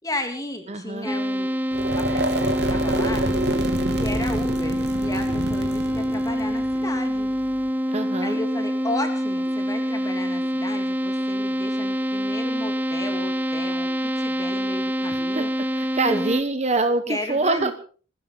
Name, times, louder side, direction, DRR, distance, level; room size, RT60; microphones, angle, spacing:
voice 1, 0.0-1.5 1.9-3.5 4.0-7.3 8.2-13.9 14.1-15.5 16.1-16.2 17.1-17.7, left 1 dB, 20° left, 5 dB, 3.0 m, -34 dB
voice 2, 0.7-1.1 7.9-8.4 15.1-15.4 15.7-17.7, right 3 dB, 35° right, 9 dB, 1.2 m, -25 dB
sound 1, 1.0-16.4, equal, 10° right, 0.8 m, -26 dB
sound 2, 1.7-7.7, right 1 dB, 60° right, 2.4 m, -28 dB
20.0 x 16.0 x 4.0 m, 0.40 s
head